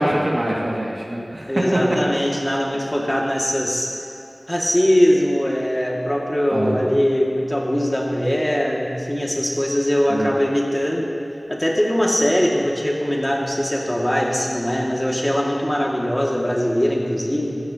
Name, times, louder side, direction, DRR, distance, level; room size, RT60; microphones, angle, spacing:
voice 1, 0.0-1.5 6.5-6.8 10.1-10.3, right 1 dB, 75° right, -4 dB, 2.3 m, -24 dB
voice 2, 1.5-3.9 4.5-11.1 11.5-17.6, equal, 15° left, -3 dB, 2.3 m, -21 dB
15.0 x 15.0 x 3.0 m, 2.9 s
wide cardioid pair, 50°, 0 cm